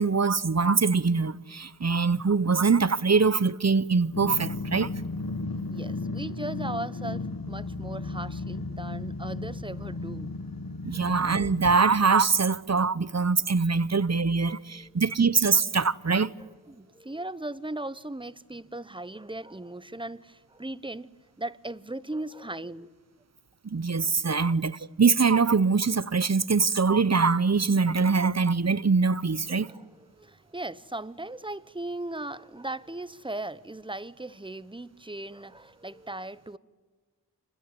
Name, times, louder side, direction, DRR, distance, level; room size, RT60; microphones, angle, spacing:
voice 1, 0.0-4.9 10.8-16.3 23.6-29.7, right 4 dB, 40° right, 0.8 m, -23 dB
Growling, 4.1-11.8, left 3 dB, 55° left, 1.6 m, -35 dB
voice 2, 5.7-10.3 10.9-11.1 14.7-15.0 16.7-21.1 21.4-22.9 24.4-24.5 29.5-36.6, right 2 dB, 10° right, 0.8 m, -38 dB
28.0 x 21.0 x 9.4 m
wide cardioid pair, 55°, 40 cm